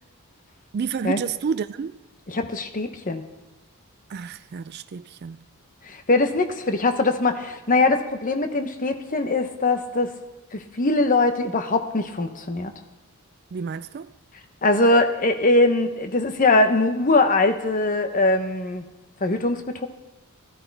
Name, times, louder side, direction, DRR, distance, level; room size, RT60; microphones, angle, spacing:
voice 1, 0.7-1.9 4.1-5.4 13.5-14.1, right 6 dB, 45° right, 0.3 m, -30 dB
voice 2, 2.3-3.2 5.8-10.1 10.5-12.7 14.6-18.8 19.2-19.9, left 2 dB, 35° left, 0.9 m, -21 dB
16.0 x 13.0 x 3.4 m
head